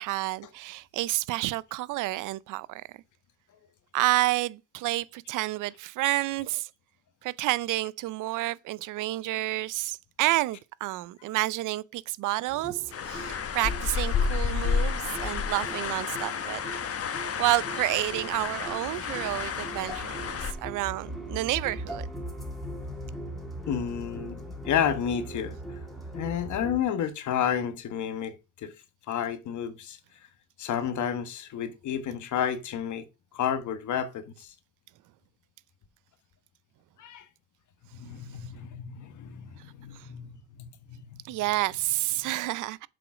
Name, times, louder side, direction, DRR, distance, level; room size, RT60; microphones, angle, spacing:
voice 1, 0.0-2.8 3.9-6.7 7.2-16.6 17.4-22.1 39.9-40.1 41.3-42.9, right 18 dB, 90° right, 0.5 m, -29 dB
sound 1, 12.5-26.8, right 1 dB, ahead, 2.5 m, -41 dB
sound 2, 12.9-20.5, left 6 dB, 50° left, 1.3 m, -31 dB
voice 2, 23.7-25.6 26.1-28.7 29.1-30.0 30.6-33.0 33.3-34.5 37.0-37.2 37.9-40.3 40.6-41.4, left 8 dB, 75° left, 1.3 m, -31 dB
7.7 x 5.1 x 5.9 m
cardioid pair, 90°, 30 cm